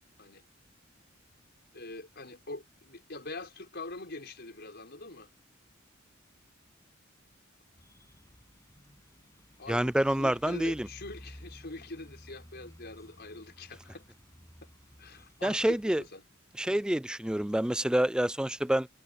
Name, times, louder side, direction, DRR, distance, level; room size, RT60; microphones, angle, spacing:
voice 1, 1.7-5.3 9.6-14.0 15.0-16.2 16.7-16.8, left 2 dB, 55° left, 5.4 m, -44 dB
sound 1, 7.7-16.1, equal, 15° left, 7.5 m, -54 dB
voice 2, 9.7-10.9 15.4-16.0 16.6-18.9, right 1 dB, 5° right, 0.4 m, -27 dB
head